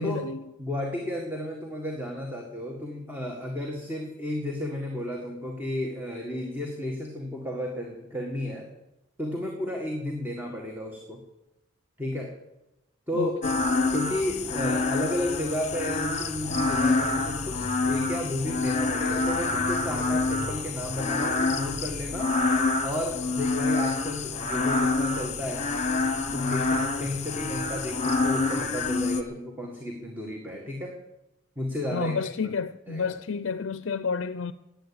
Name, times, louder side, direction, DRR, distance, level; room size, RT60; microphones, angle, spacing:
voice 1, 0.0-0.4 13.1-13.6 31.9-34.5, left 5 dB, 70° left, 0.5 m, -30 dB
voice 2, 0.6-8.7 9.2-11.2 12.0-12.3 13.1-13.3 13.9-22.4 22.8-25.7 26.3-31.0 31.6-32.5 32.9-33.1, left 1 dB, 10° right, 1.7 m, -33 dB
sound 1, 13.4-29.2, left 3 dB, 35° left, 1.3 m, -27 dB
15.5 x 9.5 x 8.6 m
head